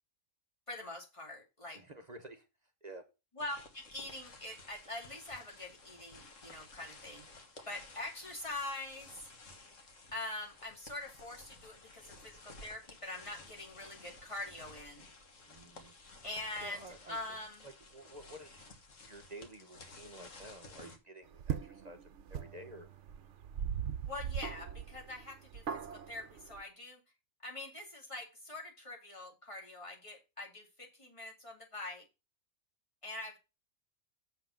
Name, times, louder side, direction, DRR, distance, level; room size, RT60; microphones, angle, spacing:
voice 1, 0.7-1.8 3.3-7.2 7.7-9.3 10.1-15.1 16.2-17.7 24.1-27.0 27.4-32.1 33.0-33.4, left 2 dB, 25° left, -1 dB, 2.7 m, -44 dB
voice 2, 1.7-2.5 2.8-3.0 15.5-15.9 16.6-17.4 17.6-18.7 19.1-22.9, right 1 dB, 35° right, 5 dB, 1.1 m, -51 dB
sound 1, 3.4-21.0, left 2 dB, 70° left, 1.9 m, -55 dB
sound 2, 21.3-26.6, right 8 dB, 65° right, 1.0 m, -40 dB
7.8 x 5.8 x 5.7 m, 0.27 s
omnidirectional pair, 1.4 m